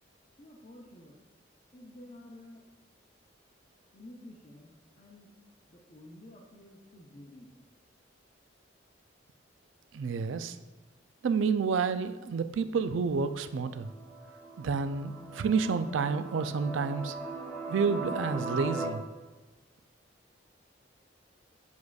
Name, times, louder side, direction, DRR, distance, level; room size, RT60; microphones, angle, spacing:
voice 1, 0.4-1.2 1.7-2.6 3.9-5.3 5.7-7.5, left 1 dB, 35° left, -3 dB, 0.7 m, -51 dB
voice 2, 9.9-10.6 11.2-13.9 14.6-17.1 17.7-19.0, right 5 dB, 80° right, 11 dB, 0.4 m, -29 dB
sound 1, 13.3-18.9, right 3 dB, 10° left, 0.9 m, -40 dB
7.2 x 6.2 x 2.4 m, 1.2 s
head